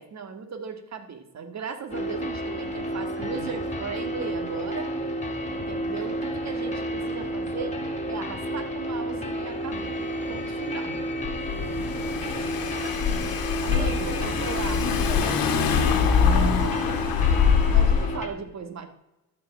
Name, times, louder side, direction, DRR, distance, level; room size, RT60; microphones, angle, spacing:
voice 1, 0.0-4.9 5.5-7.8 8.1-10.0 10.3-10.9 12.8-14.9 16.3-17.0 17.7-18.9, right 5 dB, 50° right, 7 dB, 1.8 m, -37 dB
sound 1, 1.9-18.3, equal, 20° left, 2.1 m, -31 dB
voice 2, 3.2-3.5 10.8-11.2 13.7-15.6, equal, 5° right, 2 dB, 2.6 m, -41 dB
Car / Engine, 11.2-18.2, left 6 dB, 85° left, 1.6 m, -23 dB
12.5 x 4.9 x 8.2 m, 0.95 s
cardioid pair, 95°, 34 cm